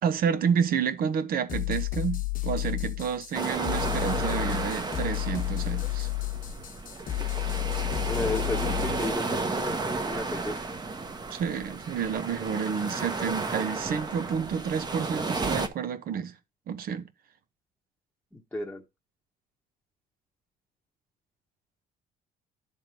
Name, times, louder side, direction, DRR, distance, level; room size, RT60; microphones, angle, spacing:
voice 1, 0.0-6.1 11.3-16.3 16.7-17.1, right 7 dB, 60° right, 1.1 m, -30 dB
sound 1, 1.5-9.2, left 19 dB, 55° left, 1.1 m, -31 dB
sound 2, 3.3-15.7, right 3 dB, 25° right, 1.1 m, -33 dB
voice 2, 8.1-10.6 18.3-18.8, left 2 dB, 5° left, 1.1 m, -33 dB
10.5 x 3.6 x 4.6 m
cardioid pair, 110°, 17 cm